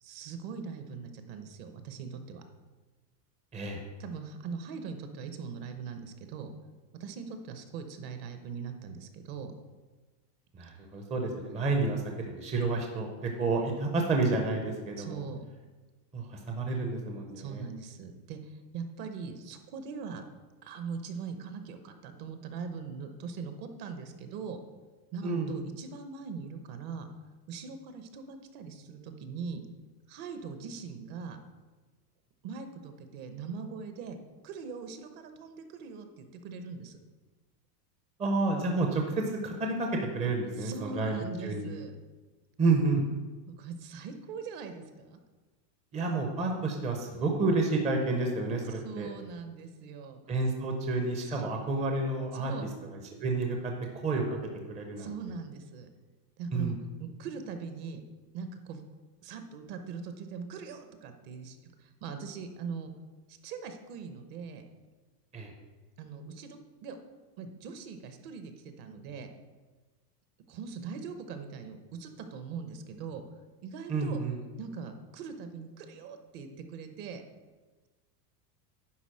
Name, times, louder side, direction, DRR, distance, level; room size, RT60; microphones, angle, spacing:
voice 1, 0.0-2.4 4.0-6.5 7.0-9.5 15.0-15.4 17.4-20.2 20.6-24.6 25.1-27.1 27.5-29.6 30.1-31.4 32.4-34.2 34.4-37.0 40.6-42.0 43.5-45.2 48.8-50.2 51.3-51.5 52.4-52.7 55.0-55.9 56.4-58.0 58.3-58.8 59.2-62.9 63.3-64.6 66.0-67.0 67.4-69.3 70.5-73.2 73.6-74.2 74.6-77.2, right 5 dB, 45° right, 7 dB, 1.0 m, -41 dB
voice 2, 10.5-15.2 16.1-17.6 25.2-25.6 38.2-39.9 40.1-41.1 41.4-41.7 42.6-43.0 45.9-49.1 50.3-52.5 52.9-53.7 54.0-54.4 54.7-55.1 56.5-56.8 65.3-65.5 73.9-74.4, right 3 dB, 15° right, 2 dB, 0.6 m, -30 dB
10.0 x 4.0 x 6.3 m, 1.3 s
supercardioid pair, 155°, 49 cm